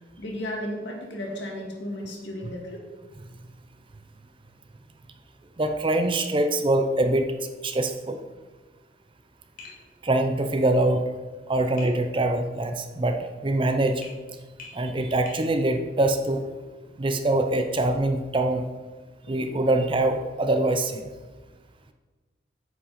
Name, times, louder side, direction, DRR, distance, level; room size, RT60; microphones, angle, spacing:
voice 1, 0.2-2.8 11.6-11.7 19.3-19.4, left 1 dB, 75° left, 0 dB, 1.9 m, -34 dB
voice 2, 5.6-7.3 7.6-8.2 10.0-11.0 11.5-13.2 13.4-14.1 14.7-16.4 17.0-18.6 19.3-21.1, right 2 dB, 25° right, 6 dB, 0.6 m, -24 dB
Tap, 9.6-9.8 11.8-12.0 14.0-14.2 14.6-14.8 15.3-15.4, left 4 dB, 50° left, 1.9 m, -43 dB
8.4 x 5.2 x 5.6 m, 1.3 s
head